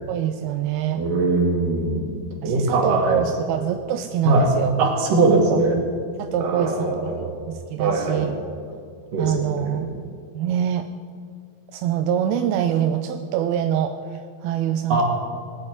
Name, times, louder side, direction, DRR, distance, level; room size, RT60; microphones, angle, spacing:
voice 1, 0.1-1.0 2.4-4.7 5.5-5.6 6.2-8.4 9.2-9.9 10.3-10.9 11.7-15.0, right 10 dB, 85° right, 7 dB, 2.5 m, -25 dB
voice 2, 0.9-2.2 2.4-3.2 4.2-4.5 4.8-5.8 6.4-7.4 7.8-8.3 9.1-9.8 14.9-15.0, right 3 dB, 60° right, 0 dB, 4.0 m, -21 dB
19.5 x 7.8 x 9.5 m, 2.1 s
omnidirectional pair, 4.4 m